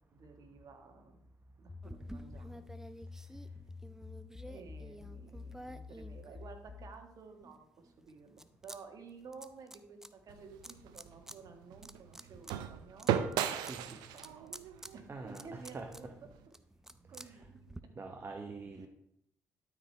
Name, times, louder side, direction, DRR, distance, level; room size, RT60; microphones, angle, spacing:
voice 1, 0.1-1.2 1.6-2.7 4.4-14.6 14.9-16.1 17.1-17.6, right 4 dB, 60° right, 5 dB, 1.6 m, -53 dB
sound 1, 1.7-7.0, left 4 dB, 35° left, 1.0 m, -49 dB
sound 2, 1.8-6.9 7.4-8.8 9.0-10.1 10.6-11.4 11.7-17.8, right 1 dB, 5° right, 0.6 m, -51 dB
sound 3, 10.3-16.4, right 10 dB, 80° right, 0.5 m, -38 dB
voice 2, 13.7-14.0 15.1-16.1 17.1-17.5 18.0-18.9, right 3 dB, 35° right, 4 dB, 1.0 m, -45 dB
12.5 x 5.0 x 3.4 m, 0.76 s
supercardioid pair, 55°, 7 cm